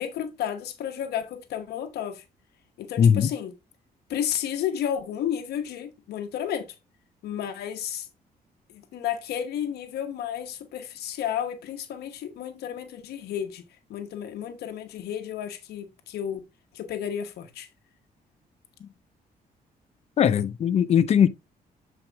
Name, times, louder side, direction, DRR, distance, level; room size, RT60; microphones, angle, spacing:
voice 1, 0.0-2.2 2.8-3.5 4.1-6.7 7.2-8.1 8.7-13.6 13.9-16.5 16.7-17.7, left 9 dB, 90° left, 1.1 m, -32 dB
voice 2, 3.0-3.3 20.2-21.3, left 8 dB, 40° left, 0.5 m, -19 dB
7.7 x 4.6 x 3.4 m
cardioid pair, 145°, 16 cm